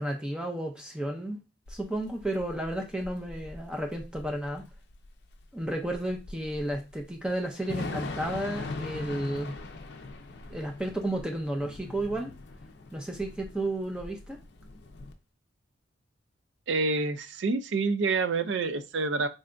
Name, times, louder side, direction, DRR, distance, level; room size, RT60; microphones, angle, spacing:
voice 1, 0.0-1.4 1.7-4.6 5.5-9.5 10.5-12.3 12.9-14.4, right 1 dB, 5° right, 3 dB, 0.5 m, -32 dB
Thunder / Rain, 1.7-15.1, left 3 dB, 60° left, 0.5 m, -41 dB
voice 2, 16.7-19.3, right 3 dB, 70° right, 10 dB, 0.4 m, -27 dB
3.8 x 3.3 x 2.5 m, 0.27 s
head